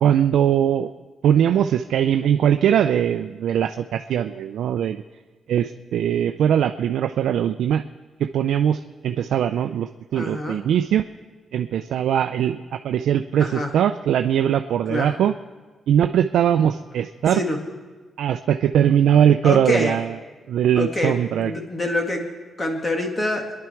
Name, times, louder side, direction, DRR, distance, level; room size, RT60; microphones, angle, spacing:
voice 1, 0.0-0.9 1.2-5.0 5.5-7.8 8.2-11.1 11.5-15.3 15.9-17.4 18.2-20.1 20.5-21.5, right 9 dB, 85° right, 7 dB, 0.4 m, -20 dB
voice 2, 10.1-10.6 13.4-13.7 14.9-15.1 17.3-17.6 19.4-20.0 20.8-22.2 22.6-23.5, left 1 dB, 25° left, 2 dB, 2.2 m, -25 dB
26.0 x 10.5 x 4.5 m, 1.3 s
cardioid pair, 130°, 0 cm